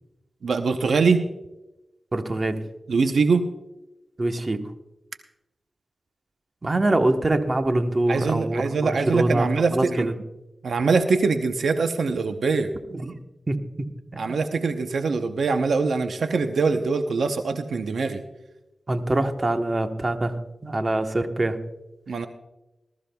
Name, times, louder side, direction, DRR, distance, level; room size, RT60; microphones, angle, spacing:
voice 1, 0.4-1.2 2.9-3.5 8.1-10.1 10.6-12.7 14.2-18.2 22.1-22.3, right 4 dB, 85° right, 7 dB, 0.7 m, -23 dB
voice 2, 2.1-2.6 4.2-4.7 6.6-10.1 12.9-13.1 13.5-13.9 14.1-14.4 18.9-21.6, right 2 dB, 40° right, 6 dB, 1.1 m, -24 dB
20.0 x 13.5 x 2.3 m, 0.97 s
wide cardioid pair, 70°, 0 cm